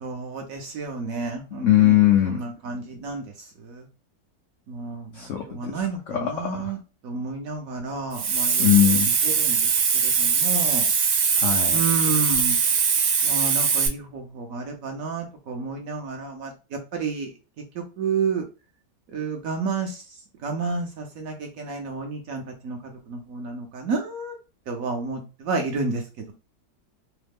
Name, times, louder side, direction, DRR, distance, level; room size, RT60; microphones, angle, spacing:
voice 1, 0.0-1.9 2.3-3.2 4.7-5.0 5.5-6.8 7.0-8.7 9.4-9.6 10.2-10.8 11.7-12.6 13.2-16.5 17.0-17.3 18.0-18.4 19.1-19.9 20.4-22.8 23.1-24.3 24.7-25.2 25.5-26.0, right 4 dB, 65° right, 3 dB, 0.9 m, -30 dB
voice 2, 1.6-2.4 5.2-5.4 5.8-6.7 8.6-9.1 11.4-11.8, left 12 dB, 85° left, 1 dB, 0.6 m, -20 dB
Hiss, 8.1-13.9, right 6 dB, 85° right, 1.3 m, -21 dB
3.1 x 2.0 x 3.3 m, 0.31 s
omnidirectional pair, 1.9 m